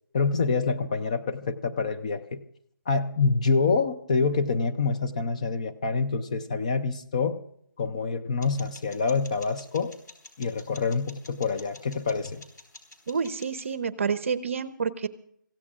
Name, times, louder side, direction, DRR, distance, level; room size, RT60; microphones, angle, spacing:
voice 1, 0.1-2.4 2.9-7.4 7.8-9.9 10.4-12.4, left 4 dB, 20° left, 7 dB, 0.5 m, -26 dB
sound 1, 8.4-13.7, left 3 dB, 60° left, 4.5 m, -50 dB
voice 2, 13.1-15.1, right 6 dB, 40° right, 13 dB, 0.8 m, -29 dB
27.0 x 16.0 x 2.5 m, 0.69 s
figure-of-eight pair, 165°, 11 cm